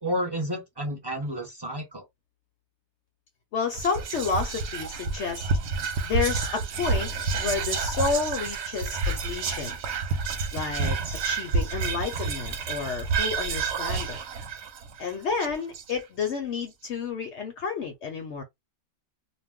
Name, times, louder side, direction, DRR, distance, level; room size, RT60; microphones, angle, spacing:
voice 1, 0.0-2.0, equal, 25° right, 0.5 m, -31 dB
voice 2, 3.5-5.5 6.0-7.1 7.4-9.8 10.5-11.0 11.2-14.2 15.0-18.4, left 5 dB, 60° left, 0.8 m, -30 dB
Whispering, 3.7-16.2, right 4 dB, 65° right, 0.7 m, -29 dB
2.5 x 2.1 x 3.4 m
omnidirectional pair, 1.6 m